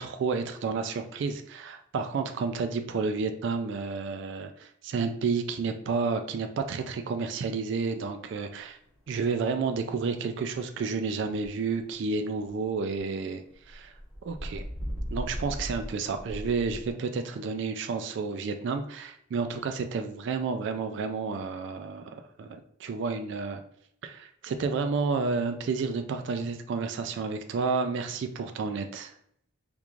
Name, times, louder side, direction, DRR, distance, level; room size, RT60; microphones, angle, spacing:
voice 1, 0.0-8.8 9.1-13.9 14.2-14.6 15.1-23.6 24.0-29.1, right 4 dB, 65° right, 7 dB, 0.3 m, -31 dB
sound 1, 8.9-11.9 12.3-13.0 13.5-16.9, equal, 5° left, 0.9 m, -37 dB
3.6 x 3.0 x 2.4 m, 0.70 s
head